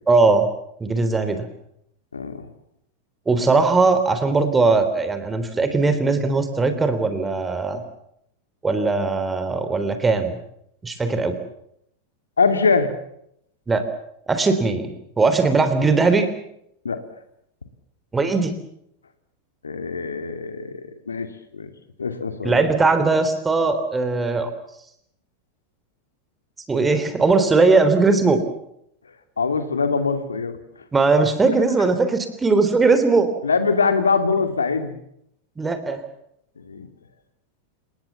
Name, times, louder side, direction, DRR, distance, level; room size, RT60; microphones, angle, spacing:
voice 1, 0.1-0.5 0.8-1.5 3.3-7.8 8.6-10.4 10.8-11.4 13.7-13.9 14.3-16.3 18.1-18.5 22.4-24.5 26.7-28.4 30.9-33.3 35.6-36.0, right 3 dB, 15° right, 10 dB, 3.5 m, -19 dB
voice 2, 2.1-2.4 12.4-12.9 16.8-17.0 19.6-21.3 21.5-21.7 22.0-22.6 29.4-30.6 33.4-34.9 36.6-36.9, left 4 dB, 75° left, 8 dB, 2.6 m, -22 dB
29.5 x 19.0 x 7.2 m, 0.74 s
figure-of-eight pair, 90°, 0 cm